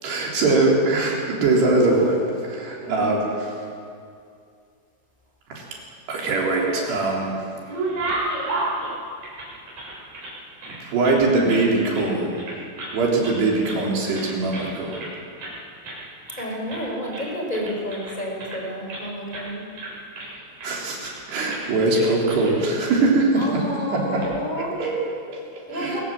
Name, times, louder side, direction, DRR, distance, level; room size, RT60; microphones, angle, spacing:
voice 1, 0.0-3.5 5.5-5.6 6.1-7.4 8.3-8.5 10.8-12.4 12.9-15.0 20.6-23.6 23.9-24.3 24.6-26.0, right 2 dB, 60° right, -2 dB, 5.6 m, -22 dB
voice 2, 2.8-3.3 16.4-19.6 23.3-24.7 25.7-26.0, equal, 10° left, -1 dB, 4.7 m, -30 dB
sound 1, 6.2-7.0 7.4-10.3 10.6-11.7 11.9-12.1 12.4-13.0 13.2-13.8 14.1-15.1 15.4-15.6 15.8-16.0 16.3-16.9 17.1-19.0 19.3-19.5 19.7-20.7 21.0-21.2 21.5-21.6 21.9-22.5 22.9-23.0 23.9-24.3, right 2 dB, 45° right, 8.5 m, -32 dB
23.5 x 17.0 x 7.7 m, 2.4 s
omnidirectional pair, 5.6 m